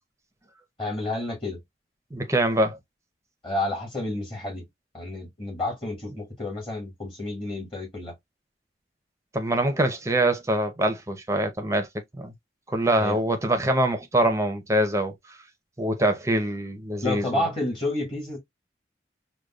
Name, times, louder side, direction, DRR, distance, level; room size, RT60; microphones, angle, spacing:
voice 1, 0.8-1.6 3.4-4.6 4.9-8.1 13.0-13.2 17.0-18.4, left 2 dB, 30° left, 1.7 m, -30 dB
voice 2, 2.1-2.8 9.3-11.9 12.1-12.3 12.7-15.1 15.8-17.4, right 1 dB, 15° right, 0.7 m, -24 dB
5.0 x 2.3 x 2.3 m
head